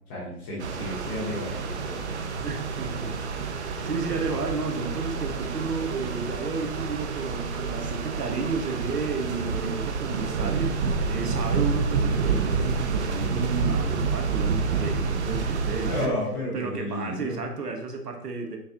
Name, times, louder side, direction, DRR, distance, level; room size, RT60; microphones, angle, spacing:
voice 1, 0.1-2.0 2.3-2.5 15.9-17.4, left 2 dB, 15° left, -4 dB, 0.6 m, -32 dB
sound 1, 0.6-16.1, right 5 dB, 45° right, 0.6 m, -28 dB
voice 2, 2.4-16.2 16.5-18.6, right 4 dB, 80° right, 3 dB, 1.1 m, -32 dB
6.8 x 2.8 x 2.6 m, 0.72 s
figure-of-eight pair, 135°, 46 cm